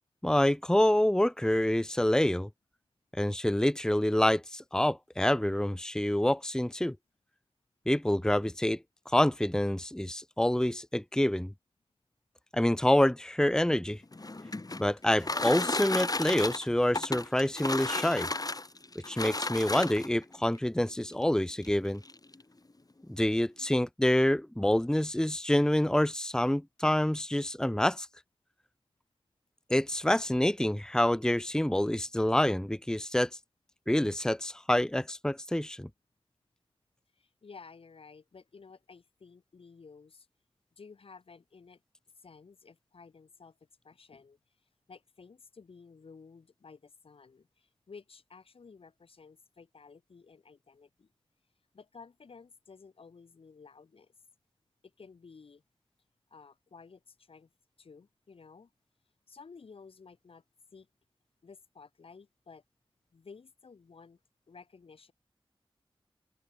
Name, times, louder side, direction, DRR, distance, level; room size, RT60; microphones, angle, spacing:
voice 1, 0.2-2.5 3.2-7.0 7.9-8.8 9.1-11.5 12.5-14.0 14.8-18.3 19.1-22.0 23.1-28.1 29.7-33.3 33.9-35.9, left 1 dB, 5° left, 0.9 m, -27 dB
sound 1, 14.0-20.2 21.1-21.2 21.6-21.7 22.0-22.4, left 2 dB, 40° left, 4.5 m, -33 dB
voice 2, 37.2-40.3 40.8-41.8 42.2-43.6 43.8-44.4 44.9-51.1 51.7-54.1 54.8-55.6 56.3-57.5 57.8-58.7 59.3-60.4 60.7-60.9 61.4-62.6 63.1-64.2 64.5-65.1, left 5 dB, 90° left, 7.6 m, -53 dB
open air
cardioid pair, 45°, 9 cm